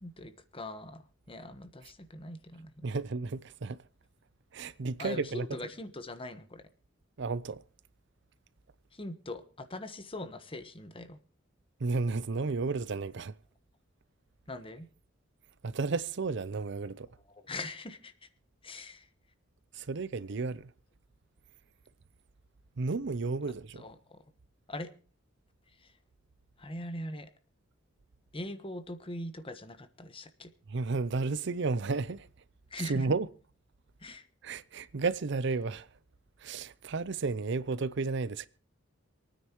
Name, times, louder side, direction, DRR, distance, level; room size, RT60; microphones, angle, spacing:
voice 1, 0.0-2.8 5.0-6.6 8.9-11.2 14.5-14.9 17.4-18.1 18.6-19.1 23.8-24.2 24.7-24.9 26.6-27.3 28.3-30.5 32.7-33.0 34.0-34.2, left 1 dB, 30° left, 1.2 m, -41 dB
voice 2, 2.8-3.8 4.5-5.5 7.2-7.6 11.8-13.3 15.6-17.1 19.7-20.7 22.8-23.8 30.7-32.3 32.8-33.3 34.4-35.9 36.4-38.5, right 4 dB, 65° right, 0.6 m, -32 dB
27.0 x 9.6 x 3.0 m
head